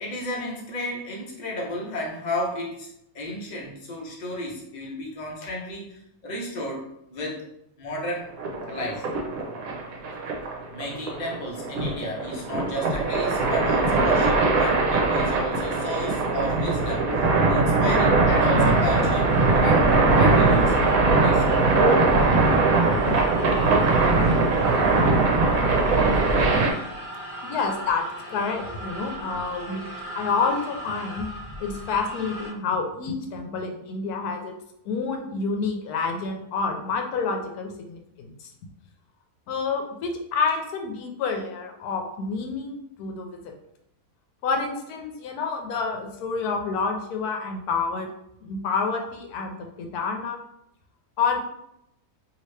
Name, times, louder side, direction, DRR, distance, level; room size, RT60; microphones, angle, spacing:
voice 1, 0.0-2.9 3.1-7.5 7.8-8.4 8.7-9.1 10.7-19.3 19.6-19.9 20.1-20.8 21.0-21.6, left 1 dB, 40° left, -2 dB, 0.7 m, -33 dB
sound 1, 8.4-26.7, right 3 dB, 65° right, 1.1 m, -21 dB
sound 2, 18.3-32.5, right 1 dB, 25° right, 0.8 m, -38 dB
voice 2, 27.4-28.0 28.3-31.3 31.6-34.6 34.8-38.5 39.5-43.5 44.4-48.1 48.4-50.4 51.2-51.4, left 4 dB, 80° left, 3 dB, 1.1 m, -28 dB
2.8 x 2.8 x 3.2 m, 0.78 s
omnidirectional pair, 1.7 m